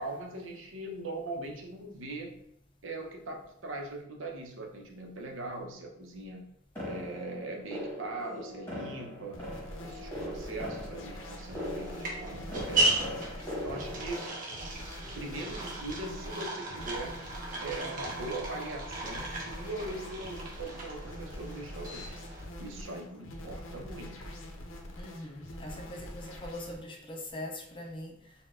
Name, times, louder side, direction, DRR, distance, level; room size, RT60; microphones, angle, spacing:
voice 1, 0.0-2.3 2.8-6.5 6.8-9.4 9.8-13.2 13.6-14.3 15.2-17.2 17.6-22.2 22.6-24.1, right 2 dB, 75° right, 1 dB, 0.8 m, -40 dB
sound 1, 6.8-14.4, left 1 dB, 10° left, 1.1 m, -41 dB
sound 2, 9.3-26.8, left 1 dB, 90° left, 0.7 m, -44 dB
sound 3, 11.2-22.4, right 2 dB, 45° right, 0.9 m, -36 dB
voice 2, 25.0-28.3, left 1 dB, 25° left, 2 dB, 0.5 m, -42 dB
4.2 x 2.2 x 3.6 m, 0.71 s
head